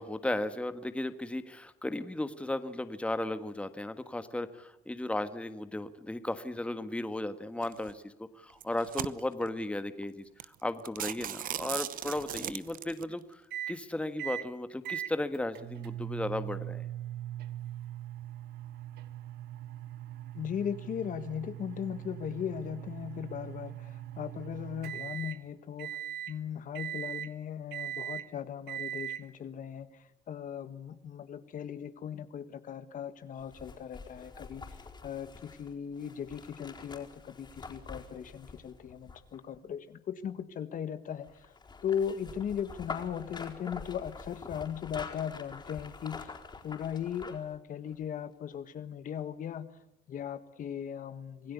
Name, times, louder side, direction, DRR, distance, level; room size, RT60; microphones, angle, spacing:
voice 1, 0.0-13.4 13.7-16.9, left 1 dB, 5° left, 10 dB, 1.5 m, -35 dB
sound 1, 7.6-7.9 8.5-9.5 10.0-10.1 10.4-10.5 10.8-13.0, right 11 dB, 55° right, 1.0 m, -37 dB
sound 2, 13.5-13.8 14.2-14.5 14.8-25.4 25.8-26.3 26.7-27.3 27.7-28.3 28.7-29.2, right 11 dB, 75° right, 1.3 m, -40 dB
voice 2, 20.3-26.0 26.3-29.9 30.3-34.6 35.0-41.5 41.8-46.3 46.6-49.7 50.1-51.5, left 8 dB, 50° left, 11 dB, 1.6 m, -38 dB
sound 3, 33.4-39.6 41.2-47.5 47.9-48.0, left 4 dB, 25° left, 4.4 m, -46 dB
27.0 x 17.0 x 8.3 m, 0.90 s
cardioid pair, 110°, 17 cm